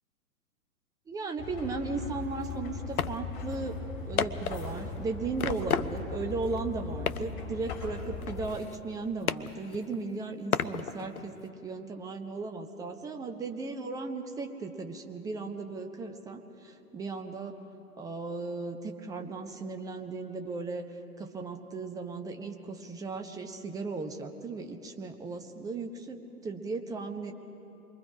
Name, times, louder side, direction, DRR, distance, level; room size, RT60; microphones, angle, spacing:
voice 1, 1.1-3.8 4.1-17.6 18.0-27.3, right 3 dB, 10° right, 5 dB, 0.9 m, -36 dB
sound 1, 1.4-8.5, left 4 dB, 35° left, 4.3 m, -39 dB
sound 2, 2.0-2.1 2.5-2.6 3.0-3.2 3.5-3.6 4.2-5.0 5.4-6.2 6.5-6.6 7.1-7.4 7.7-9.0 9.3-10.0 10.5-11.5, left 7 dB, 70° left, 0.8 m, -33 dB
28.0 x 23.5 x 5.0 m, 2.9 s
figure-of-eight pair, 115°, 45 cm